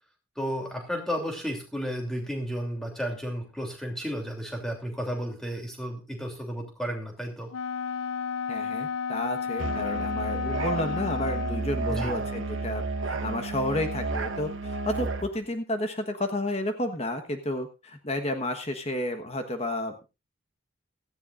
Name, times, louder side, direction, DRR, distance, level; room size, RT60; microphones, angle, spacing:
voice 1, 0.4-7.5 11.9-12.2, equal, ahead, 2 dB, 2.9 m, -33 dB
Wind instrument woodwind instrument, 7.5-11.8, left 6 dB, 85° left, 0.5 m, -32 dB
voice 2, 8.5-20.0, left 1 dB, 30° left, 7 dB, 1.3 m, -31 dB
Musical instrument, 9.6-15.3, right 3 dB, 70° right, 1.7 m, -32 dB
17.0 x 14.0 x 2.5 m, 0.28 s
head